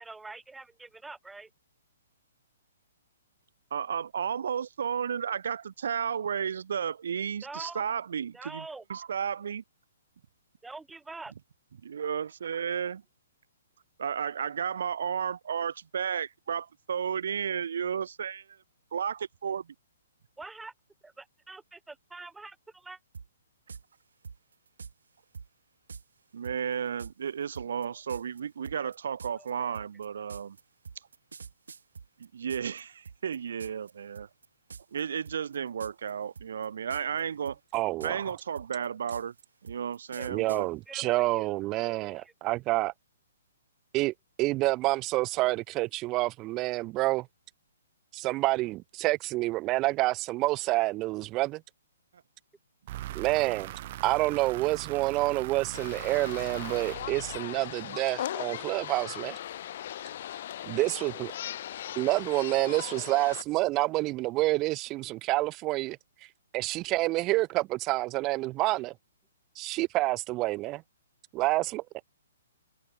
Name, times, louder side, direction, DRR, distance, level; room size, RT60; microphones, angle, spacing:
voice 1, 0.0-1.5 7.4-7.8 8.3-8.8 10.6-11.3 20.4-20.7 21.0-23.0 28.8-28.9 29.4-29.7 40.1-40.5 40.9-41.6 41.9-42.3 53.4-53.6, right 3 dB, 5° right, 4.4 m, -45 dB
voice 2, 3.7-9.6 11.8-13.0 14.0-18.6 18.9-19.7 26.3-30.6 32.2-34.3 34.9-37.6 38.0-39.3 39.6-40.7, right 7 dB, 70° right, 2.0 m, -33 dB
sound 1, 23.1-23.3 23.7-23.8 24.2-24.9 25.3-25.5 25.9-26.0 26.4-32.8 33.1-33.9 34.2-34.5 34.7-35.0 35.3-36.1 36.4-37.2 37.5-40.6, right 5 dB, 85° right, 3.8 m, -45 dB
voice 3, 37.7-38.2 40.3-42.9 43.9-47.3 48.1-51.6 53.1-53.7 54.0-59.4 60.7-61.3 62.0-66.0 66.5-68.9 69.6-70.8 71.3-71.8, right 19 dB, 25° right, 0.3 m, -28 dB
sound 2, 52.9-57.8, right 15 dB, 45° right, 1.2 m, -41 dB
sound 3, 55.7-63.4, left 11 dB, 55° left, 2.5 m, -39 dB
hypercardioid pair, 145°, 0 cm